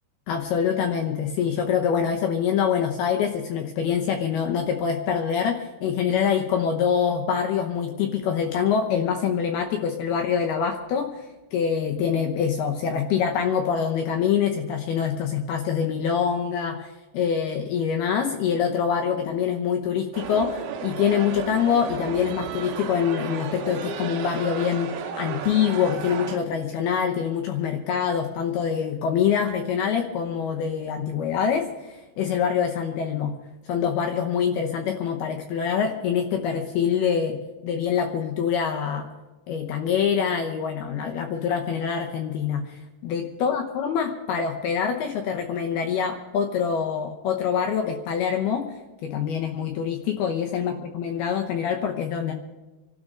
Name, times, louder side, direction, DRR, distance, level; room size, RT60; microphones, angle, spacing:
voice 1, 0.3-24.9 25.2-33.3 33.7-37.4 37.6-39.1 39.5-48.6 49.0-52.3, left 7 dB, 75° left, 3 dB, 2.4 m, -25 dB
sound 1, 20.1-26.4, right 7 dB, 85° right, 3.6 m, -33 dB
27.0 x 13.0 x 3.8 m, 1.1 s
omnidirectional pair, 5.6 m